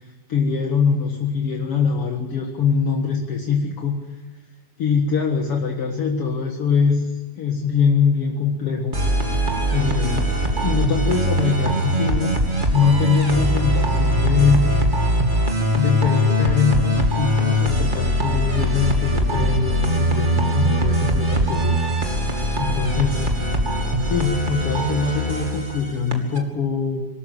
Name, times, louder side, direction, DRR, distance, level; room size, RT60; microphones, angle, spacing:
voice 1, 0.3-4.0 4.8-7.1 7.4-9.0 9.7-10.3 10.6-12.3 12.7-14.7 15.7-21.8 22.6-23.3 24.0-27.1, left 5 dB, 50° left, 1 dB, 1.9 m, -22 dB
sound 1, 8.9-26.4, equal, 20° right, 1.5 m, -21 dB
25.0 x 13.5 x 9.1 m, 1.2 s
omnidirectional pair, 4.7 m